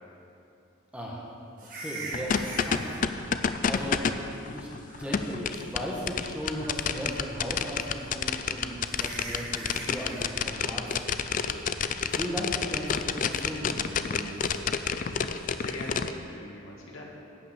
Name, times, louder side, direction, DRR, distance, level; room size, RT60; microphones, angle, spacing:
voice 1, 0.9-1.3 1.7-2.9 3.7-4.0 4.5-4.7 5.0-11.5 12.1-14.5, equal, 5° right, -4 dB, 1.5 m, -36 dB
sound 1, 1.6-3.0 4.7-5.2 5.5-5.6 6.3-6.8 8.2-8.3 8.9-10.3 14.4-14.6, right 2 dB, 45° right, 2.1 m, -41 dB
sound 2, 2.1-16.1, left 6 dB, 40° left, 0.4 m, -29 dB
voice 2, 15.6-17.0, left 1 dB, 85° left, -2 dB, 2.2 m, -41 dB
11.5 x 5.9 x 8.3 m, 2.7 s
head